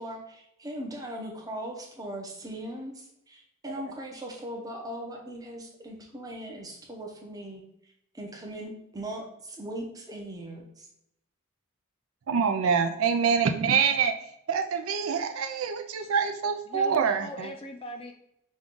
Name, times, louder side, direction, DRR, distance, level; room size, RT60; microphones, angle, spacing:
voice 1, 0.0-7.6 8.1-10.9, right 1 dB, 15° right, 0 dB, 0.7 m, -39 dB
voice 2, 12.3-14.1 14.5-17.5, right 6 dB, 65° right, 6 dB, 0.4 m, -25 dB
voice 3, 16.7-18.1, equal, 25° left, 5 dB, 0.4 m, -40 dB
5.2 x 2.4 x 3.7 m, 0.78 s
head